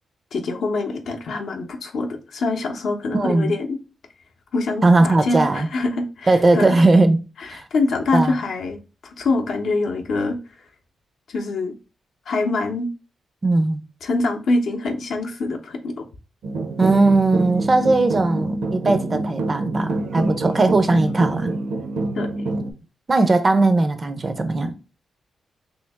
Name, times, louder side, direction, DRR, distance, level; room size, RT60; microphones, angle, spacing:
voice 1, 0.3-3.8 4.5-6.7 7.4-10.4 11.3-11.7 12.3-12.9 14.0-16.0 22.1-22.3, left 3 dB, 65° left, 0.6 m, -24 dB
voice 2, 3.1-3.5 4.8-5.7 6.3-7.2 7.5-7.7 8.1-8.4 13.4-13.8 16.8-21.5 23.1-24.7, right 2 dB, 25° right, 0.4 m, -18 dB
sound 1, 16.4-22.7, right 2 dB, 85° right, 0.6 m, -26 dB
3.1 x 2.7 x 3.4 m
wide cardioid pair, 140°, 0 cm